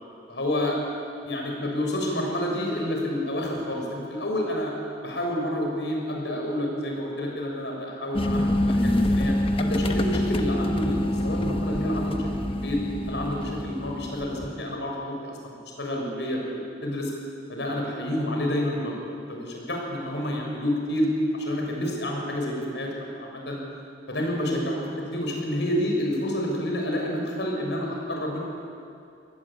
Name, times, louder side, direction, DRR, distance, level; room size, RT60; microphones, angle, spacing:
voice 1, 0.3-0.8 1.2-4.7 5.0-12.8 13.1-16.4 16.8-17.1 17.5-18.9 19.3-21.1 21.3-22.9 23.2-23.6 24.1-28.4, left 1 dB, 85° left, 0 dB, 6.7 m, -29 dB
sound 1, 8.1-14.7, left 1 dB, 30° left, 1.3 m, -26 dB
27.0 x 20.0 x 8.8 m, 2.5 s
head